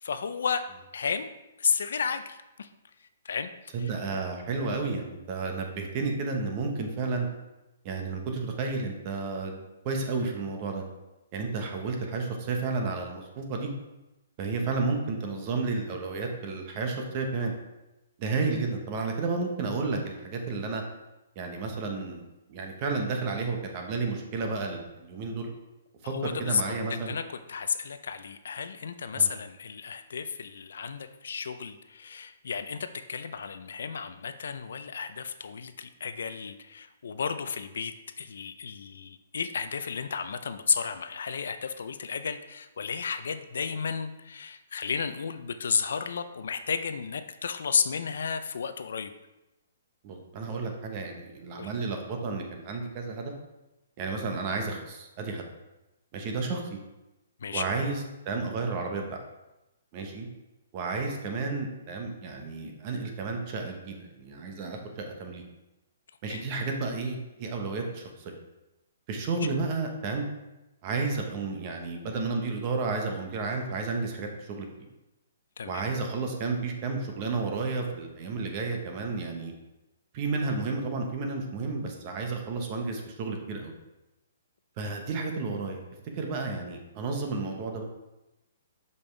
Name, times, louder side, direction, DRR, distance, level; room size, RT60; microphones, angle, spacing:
voice 1, 0.0-0.6 0.9-1.3 1.6-2.7 3.2-3.5 3.8-3.9 26.0-26.6 26.9-27.2 27.5-49.1 51.6-51.7 57.4-57.6 66.3-66.4 75.6-75.8, left 6 dB, 75° left, 10 dB, 0.5 m, -32 dB
voice 2, 3.7-7.3 7.8-10.8 11.3-13.7 14.4-17.5 18.2-20.8 21.3-22.2 22.5-25.5 26.0-27.1 29.1-29.3 50.0-53.3 54.0-55.4 56.1-56.8 57.5-59.2 59.9-60.3 60.7-65.4 66.2-68.3 69.1-70.2 70.8-74.9 75.6-79.5 80.1-83.7 84.8-85.8 86.1-87.8, right 3 dB, 35° right, 3 dB, 1.1 m, -32 dB
7.0 x 5.4 x 3.3 m, 0.97 s
hypercardioid pair, 155°, 0 cm